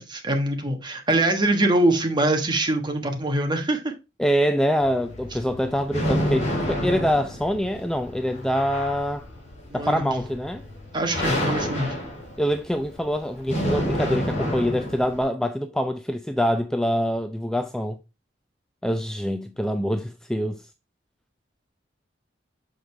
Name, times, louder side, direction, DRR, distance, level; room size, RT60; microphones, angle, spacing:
voice 1, 0.0-3.9 9.7-10.1 10.9-11.9, right 1 dB, 25° right, 1.2 m, -23 dB
voice 2, 4.2-9.3 9.7-10.6 12.4-18.0 18.8-20.6, equal, 5° left, 0.3 m, -25 dB
sound 1, 4.8-15.2, equal, 40° left, 3.0 m, -29 dB
6.4 x 5.1 x 3.2 m
head